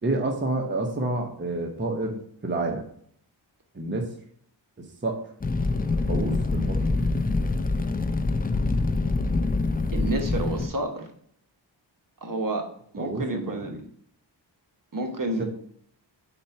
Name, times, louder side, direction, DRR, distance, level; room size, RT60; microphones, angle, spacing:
voice 1, 0.0-2.8 3.7-4.1 4.8-5.2 6.1-7.0 13.0-13.8 15.4-15.5, right 2 dB, 25° right, 2 dB, 0.9 m, -29 dB
Fire, 5.4-10.7, left 3 dB, 20° left, 0.5 m, -25 dB
voice 2, 9.9-11.1 12.2-12.6 12.9-13.8 14.9-15.4, right 1 dB, 45° right, 3 dB, 1.1 m, -29 dB
4.3 x 4.3 x 5.6 m, 0.63 s
wide cardioid pair, 105°, 46 cm